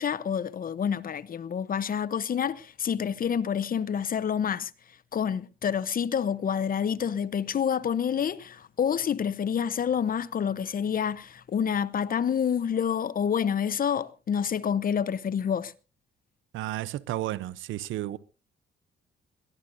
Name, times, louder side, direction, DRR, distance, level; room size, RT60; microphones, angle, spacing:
voice 1, 0.0-4.7 5.1-15.7, left 8 dB, 45° left, 0.9 m, -28 dB
voice 2, 16.5-18.2, right 15 dB, 85° right, 0.7 m, -32 dB
22.5 x 18.0 x 2.7 m
cardioid pair, 90°, 20 cm